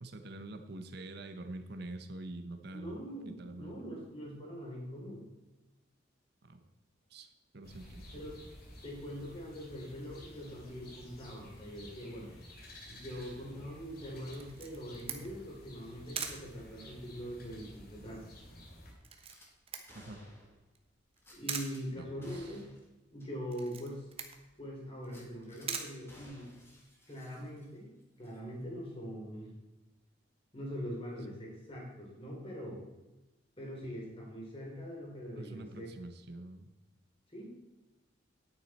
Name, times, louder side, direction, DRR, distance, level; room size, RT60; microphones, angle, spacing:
voice 1, 0.0-3.9 6.4-6.6 7.1-8.3 13.1-13.4 19.9-20.2 21.9-22.6 35.4-36.7, right 2 dB, 55° right, 7 dB, 1.0 m, -46 dB
voice 2, 2.7-5.2 8.1-8.4 8.8-12.3 12.9-18.2 21.3-22.7 23.1-24.0 24.6-26.5 27.1-27.9 28.2-29.6 30.5-32.8 33.6-35.9 37.3-37.5, equal, 30° left, -2 dB, 3.4 m, -43 dB
sound 1, 7.6-18.9, left 1 dB, 50° left, 2.7 m, -53 dB
Camera, 14.3-26.8, right 6 dB, 30° right, 1.0 m, -45 dB
Gunshot gunfire / Glass, 19.2-19.5 19.9-20.6 21.2-21.8 22.2-22.9 23.2-23.3 23.8-23.9 25.0-25.7 26.1-27.9 28.2-28.4, left 1 dB, 15° left, 2.0 m, -58 dB
10.5 x 9.2 x 4.2 m, 1.0 s
head